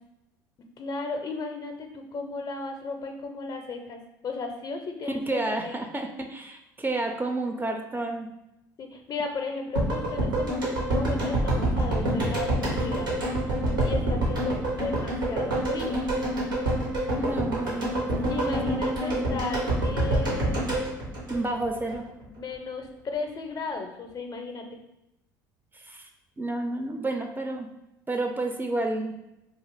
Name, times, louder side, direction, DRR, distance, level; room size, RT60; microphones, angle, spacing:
voice 1, 0.8-5.2 5.5-5.8 8.8-13.2 13.8-16.0 18.3-20.6 22.3-24.8, left 4 dB, 40° left, 4 dB, 0.5 m, -35 dB
voice 2, 5.3-8.3 17.2-18.4 18.8-19.4 21.3-22.0 25.7-26.1 26.4-27.7 28.1-29.1, right 2 dB, 20° right, 4 dB, 0.3 m, -31 dB
sound 1, 9.8-21.9 22.2-22.3, right 1 dB, 90° right, 0.8 m, -27 dB
2.4 x 2.3 x 3.3 m, 0.88 s
hypercardioid pair, 65°, 11 cm